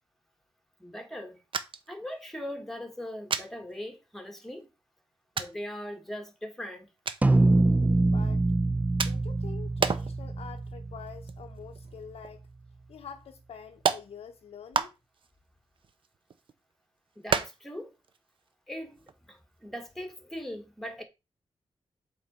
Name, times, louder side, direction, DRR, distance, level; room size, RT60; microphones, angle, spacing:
voice 1, 0.8-1.4 1.9-4.7 5.4-6.9 17.2-17.9 18.7-21.0, left 1 dB, 5° left, 1.7 m, -40 dB
sound 1, 1.5-1.9 2.2-2.3 3.3-3.5 4.4-4.5 5.4-5.6 7.1-7.3 9.0-9.4 9.8-10.2 10.6-10.7 11.1-12.0 12.2-12.3 13.2-13.3 13.8-14.0 14.7-15.3 15.8-16.5 17.3-17.8 18.0-18.2 18.5-18.6 19.0-19.1, right 6 dB, 60° right, 0.8 m, -30 dB
sound 2, 7.2-11.8, right 2 dB, 15° right, 0.4 m, -25 dB
voice 2, 8.1-8.4 9.0-12.5 12.9-14.9, left 7 dB, 85° left, 0.7 m, -46 dB
7.9 x 3.8 x 5.5 m
wide cardioid pair, 110°, 10 cm